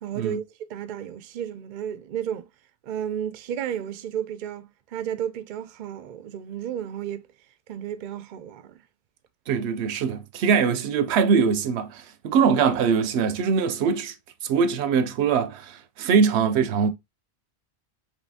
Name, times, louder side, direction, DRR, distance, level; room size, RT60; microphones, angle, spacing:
voice 1, 0.0-2.5 2.8-7.3 7.7-8.8, right 9 dB, 55° right, 0.6 m, -33 dB
voice 2, 9.5-14.1 14.5-16.9, right 6 dB, 85° right, 0.9 m, -22 dB
5.4 x 3.0 x 2.6 m
omnidirectional pair, 1.1 m